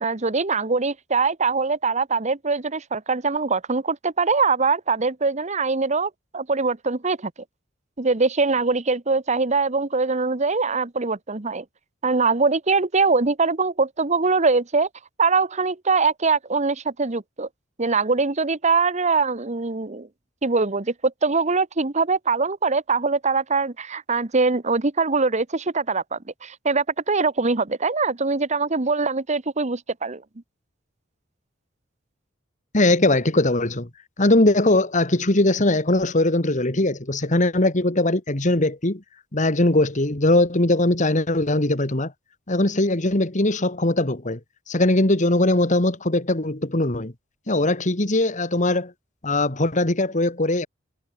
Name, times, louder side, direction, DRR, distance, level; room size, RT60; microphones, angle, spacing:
voice 1, 0.0-7.3 8.0-11.6 12.0-14.9 15.2-17.5 17.8-20.1 20.4-30.2, right 4 dB, 35° right, 1.2 m, -22 dB
voice 2, 32.7-33.9 34.2-39.0 39.3-42.1 42.5-44.4 44.7-47.1 47.5-48.9 49.2-50.7, left 2 dB, 40° left, 2.2 m, -20 dB
head